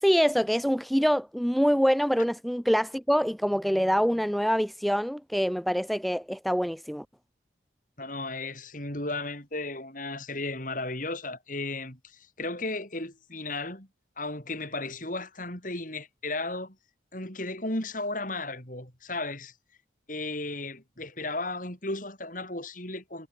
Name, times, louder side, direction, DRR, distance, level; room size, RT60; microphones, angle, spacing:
voice 1, 0.0-7.0, equal, ahead, 0.7 m, -25 dB
voice 2, 8.0-13.9 14.2-16.8 17.1-19.5 20.1-23.3, left 2 dB, 45° left, 7.4 m, -35 dB
head